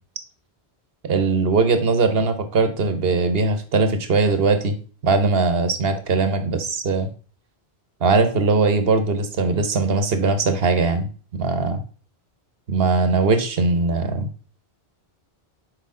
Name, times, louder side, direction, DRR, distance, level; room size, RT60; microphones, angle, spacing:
voice 1, 1.0-4.8 5.0-7.1 8.0-11.1 11.4-11.8 12.7-14.3, right 4 dB, 65° right, 8 dB, 1.1 m, -20 dB
6.4 x 4.8 x 3.7 m, 0.39 s
omnidirectional pair, 1.1 m